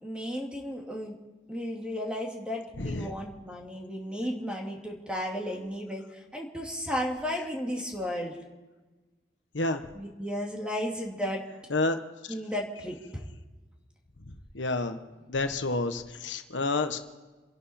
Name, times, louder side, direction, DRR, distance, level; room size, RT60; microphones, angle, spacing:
voice 1, 0.0-1.1 1.5-8.4 9.9-11.4 12.3-13.2, equal, 5° right, 0 dB, 2.4 m, -34 dB
voice 2, 2.8-3.1 9.5-9.9 11.7-12.0 14.2-15.0 15.3-17.0, left 2 dB, 90° left, 8 dB, 1.2 m, -29 dB
28.5 x 11.5 x 4.3 m, 1.2 s
head